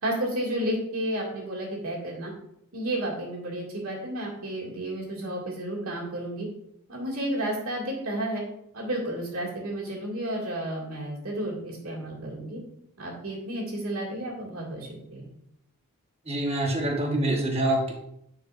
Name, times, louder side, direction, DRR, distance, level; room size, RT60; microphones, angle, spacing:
voice 1, 0.0-2.3 2.7-6.5 6.9-8.4 8.7-12.6 13.0-15.3, right 1 dB, 70° right, -3 dB, 2.2 m, -32 dB
voice 2, 16.3-17.9, right 1 dB, 25° right, 1 dB, 1.1 m, -25 dB
9.6 x 4.6 x 2.5 m, 0.77 s
head